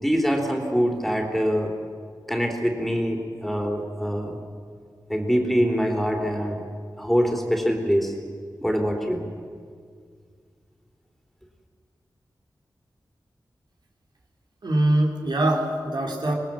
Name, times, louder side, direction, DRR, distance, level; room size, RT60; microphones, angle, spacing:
voice 1, 0.0-1.7 2.3-4.4 5.1-6.6 7.0-8.1 8.6-9.2, equal, ahead, 1 dB, 3.5 m, -24 dB
voice 2, 14.6-16.3, right 1 dB, 70° right, 0 dB, 3.4 m, -23 dB
25.5 x 20.5 x 7.6 m, 2.1 s
wide cardioid pair, 90°, 8 cm